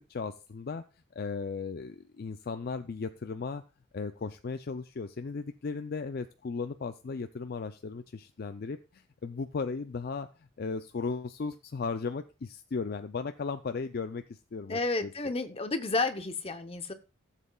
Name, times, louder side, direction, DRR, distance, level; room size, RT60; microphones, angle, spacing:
voice 1, 0.1-0.8 1.2-3.6 3.9-15.1, left 4 dB, 50° left, 8 dB, 0.4 m, -36 dB
voice 2, 14.7-16.9, left 3 dB, 30° left, 9 dB, 0.8 m, -31 dB
15.0 x 7.4 x 2.3 m, 0.32 s
head